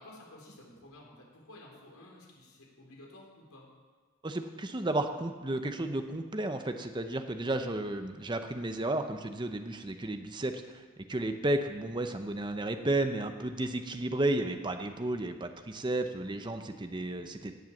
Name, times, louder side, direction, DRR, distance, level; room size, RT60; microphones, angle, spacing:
voice 1, 0.0-3.7, left 1 dB, 80° left, -2 dB, 4.0 m, -52 dB
voice 2, 4.2-10.8 11.1-17.5, right 1 dB, 20° right, 7 dB, 0.7 m, -33 dB
17.0 x 7.9 x 7.2 m, 1.4 s
head